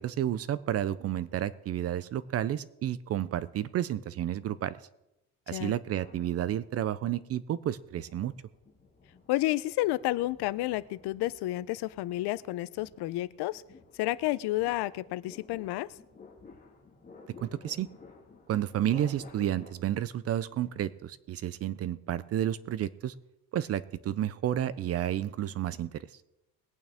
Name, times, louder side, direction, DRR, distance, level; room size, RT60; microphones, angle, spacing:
voice 1, 0.0-4.8 5.5-8.3 17.4-17.9 18.5-23.1 23.5-26.0, right 11 dB, 40° right, 16 dB, 0.4 m, -31 dB
sound 1, 5.7-7.1 7.6-19.7, left 4 dB, 20° left, 1.8 m, -55 dB
voice 2, 9.3-13.6 13.9-15.9, left 17 dB, 85° left, 17 dB, 0.6 m, -31 dB
21.0 x 8.9 x 3.5 m, 0.89 s
cardioid pair, 175°, 38 cm